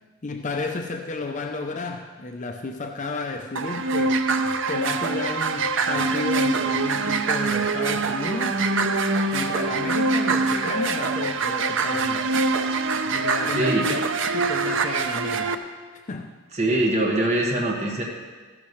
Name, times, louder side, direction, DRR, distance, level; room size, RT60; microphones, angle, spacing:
voice 1, 0.2-4.2 4.7-8.6 9.3-12.3 13.1-14.0 14.3-15.6 16.1-16.4, left 3 dB, 35° left, 4 dB, 0.6 m, -32 dB
sound 1, 3.6-15.5, right 3 dB, 60° right, 0.7 m, -24 dB
voice 2, 13.5-14.0 16.5-18.0, right 1 dB, 30° right, -1 dB, 1.6 m, -23 dB
14.5 x 12.0 x 3.2 m, 1.5 s
head